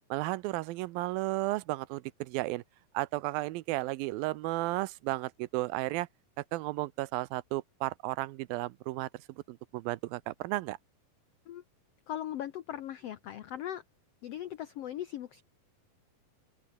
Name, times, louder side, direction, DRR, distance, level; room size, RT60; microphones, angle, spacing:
voice 1, 0.1-2.6 2.9-6.1 6.4-10.8, right 19 dB, 85° right, 2.5 m, -34 dB
voice 2, 12.1-13.8 14.2-15.4, left 11 dB, 85° left, 1.3 m, -39 dB
open air
omnidirectional pair, 4.1 m